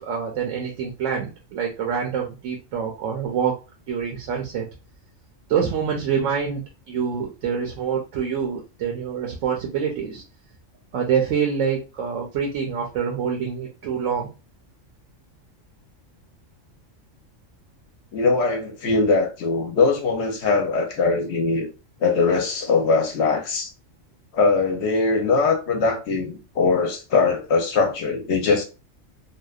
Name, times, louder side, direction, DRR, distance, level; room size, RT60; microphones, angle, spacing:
voice 1, 0.0-3.6 3.9-4.7 5.5-6.6 6.9-10.2 10.9-14.3, right 7 dB, 80° right, 0.9 m, -26 dB
voice 2, 18.1-21.7 22.0-23.7 24.3-28.6, left 4 dB, 65° left, 0.8 m, -21 dB
2.7 x 2.1 x 2.3 m
omnidirectional pair, 1.3 m